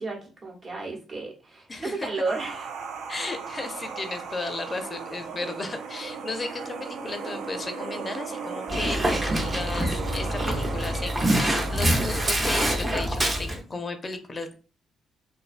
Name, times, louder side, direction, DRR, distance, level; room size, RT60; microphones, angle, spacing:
voice 1, 0.0-2.7, right 3 dB, 45° right, -1 dB, 0.9 m, -32 dB
voice 2, 1.7-2.1 3.1-14.5, left 3 dB, 30° left, 7 dB, 0.4 m, -35 dB
sound 1, 2.2-12.3, right 5 dB, 80° right, 0.3 m, -36 dB
Dog, 8.7-13.6, right 1 dB, 25° right, 0.6 m, -25 dB
2.5 x 2.2 x 2.4 m, 0.37 s
cardioid pair, 90°, 0 cm